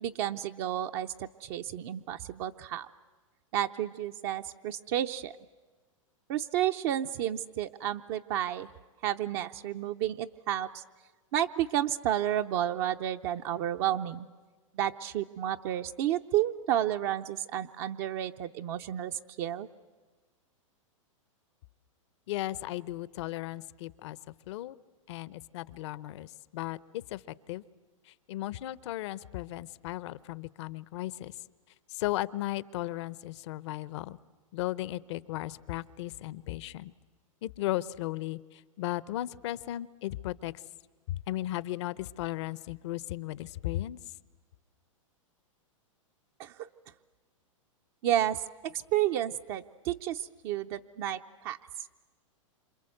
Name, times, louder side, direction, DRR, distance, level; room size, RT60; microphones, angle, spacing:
voice 1, 0.0-2.9 3.5-5.3 6.3-8.7 9.0-10.8 11.3-14.3 14.7-19.7 46.4-46.7 48.0-51.6, right 11 dB, 50° right, 6 dB, 0.8 m, -31 dB
voice 2, 22.3-24.8 25.1-27.2 27.5-27.6 28.1-31.4 31.9-34.2 34.5-36.9 37.4-40.5 41.1-44.0, left 15 dB, 60° left, 18 dB, 0.8 m, -36 dB
27.5 x 27.0 x 7.9 m, 1.3 s
hypercardioid pair, 120°, 17 cm